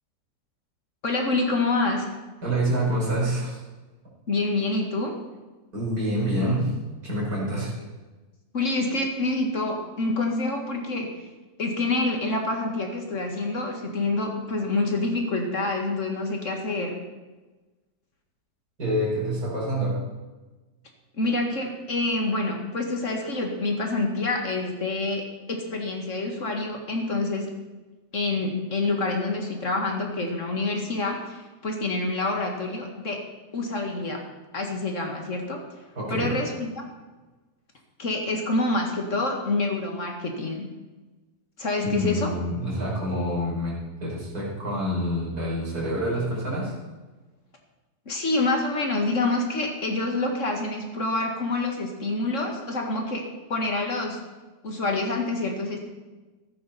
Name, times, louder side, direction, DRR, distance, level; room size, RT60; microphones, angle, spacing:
voice 1, 1.0-2.1 4.3-5.1 8.5-11.1 11.6-17.0 21.2-27.5 28.1-33.2 33.5-34.2 34.5-35.6 36.1-36.8 38.0-40.7 41.6-42.3 48.1-53.2 53.5-54.2 54.6-55.8, left 2 dB, 45° left, 2 dB, 2.1 m, -27 dB
voice 2, 2.4-3.6 5.7-6.7 7.0-7.7 18.8-20.0 36.0-36.4 41.8-43.8 44.0-46.7, right 1 dB, 60° right, -5 dB, 5.5 m, -27 dB
14.5 x 13.5 x 4.3 m, 1.2 s
omnidirectional pair, 1.8 m